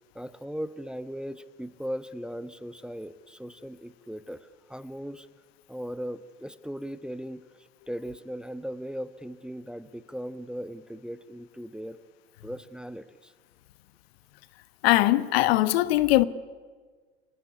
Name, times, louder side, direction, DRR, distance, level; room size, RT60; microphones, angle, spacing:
voice 1, 0.1-5.3 5.7-12.0 12.4-13.3, equal, 5° right, 1.1 m, -38 dB
voice 2, 14.8-16.2, left 17 dB, 65° left, 1.2 m, -21 dB
25.0 x 19.0 x 9.7 m
hypercardioid pair, 80°, 32 cm